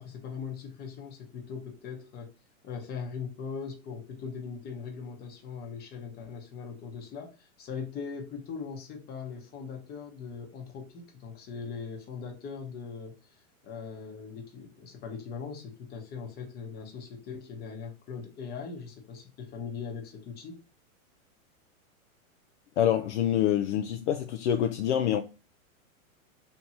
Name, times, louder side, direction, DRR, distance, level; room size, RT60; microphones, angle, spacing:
voice 1, 0.0-2.3 2.6-20.6, left 6 dB, 25° left, 1.0 m, -40 dB
voice 2, 22.8-25.2, left 10 dB, 55° left, 0.5 m, -26 dB
3.4 x 2.9 x 4.2 m
supercardioid pair, 145°, 42 cm